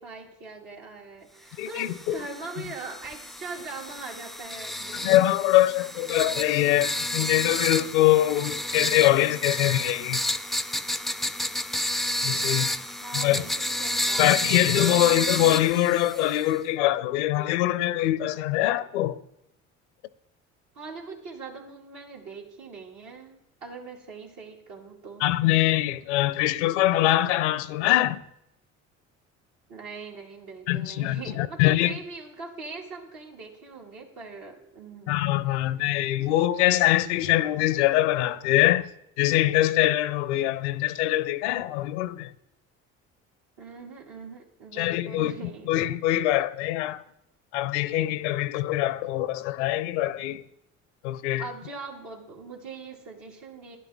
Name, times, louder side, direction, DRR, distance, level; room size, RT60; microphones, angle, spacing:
voice 1, 0.0-5.1 13.0-14.6 20.7-25.3 29.7-35.1 43.6-45.7 51.4-53.8, right 4 dB, 65° right, 2.5 m, -41 dB
voice 2, 1.6-2.2 4.9-10.2 12.2-12.7 13.1-13.5 14.2-19.2 25.2-28.2 30.7-32.0 35.1-38.9 39.2-42.3 44.8-45.3 45.7-47.0 47.5-50.4 51.0-51.4, left 15 dB, 85° left, 0.5 m, -23 dB
sound 1, 1.7-16.6, left 1 dB, ahead, 0.3 m, -31 dB
12.0 x 10.5 x 3.6 m
hypercardioid pair, 65°, 34 cm